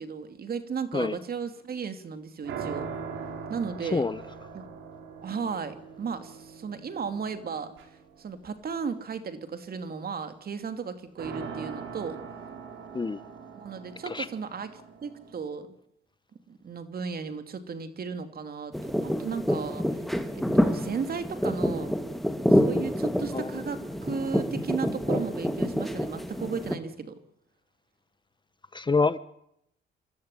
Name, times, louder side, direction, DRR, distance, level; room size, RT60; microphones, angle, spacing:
voice 1, 0.0-2.9 3.5-4.1 4.5-4.6 5.2-7.7 8.2-12.2 13.6-15.7 16.5-20.0 20.5-21.9 22.5-27.2, right 6 dB, 50° right, 9 dB, 2.8 m, -35 dB
sound 1, 2.4-8.7 11.2-15.4, right 6 dB, 80° right, 4.5 m, -41 dB
sound 2, 18.7-26.8, equal, ahead, 2.1 m, -27 dB
voice 2, 28.7-29.2, left 4 dB, 25° left, 15 dB, 1.0 m, -26 dB
26.5 x 13.0 x 9.9 m, 0.76 s
cardioid pair, 90°, 20 cm